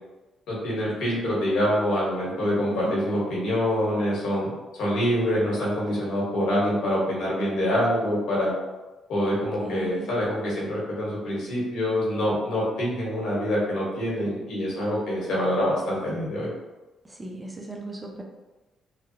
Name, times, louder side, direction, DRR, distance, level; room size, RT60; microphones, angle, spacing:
voice 1, 0.5-8.5 9.1-16.5, equal, 80° left, -6 dB, 1.3 m, -25 dB
voice 2, 2.4-3.0 9.6-10.1 17.2-18.2, right 3 dB, 20° right, 0 dB, 0.5 m, -36 dB
3.1 x 2.3 x 2.8 m, 1.1 s
cardioid pair, 90°, 0 cm